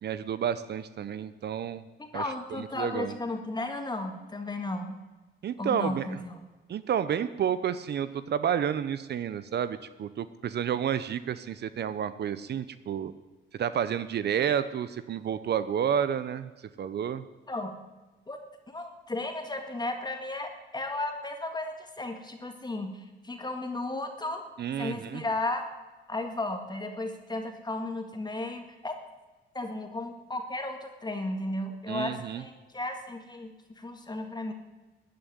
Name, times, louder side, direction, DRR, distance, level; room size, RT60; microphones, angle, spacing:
voice 1, 0.0-1.8 2.1-2.2 2.6-3.1 5.4-6.1 6.7-13.1 13.6-16.5 16.8-17.2 24.6-25.2 31.9-32.4, right 9 dB, 55° right, 13 dB, 0.8 m, -30 dB
voice 2, 2.0-5.0 5.6-6.4 17.5-17.8 18.3-18.4 18.7-24.4 24.8-25.7 26.1-28.9 29.5-34.5, left 2 dB, 20° left, 5 dB, 1.9 m, -34 dB
14.0 x 9.1 x 9.5 m, 1.2 s
cardioid pair, 90°, 20 cm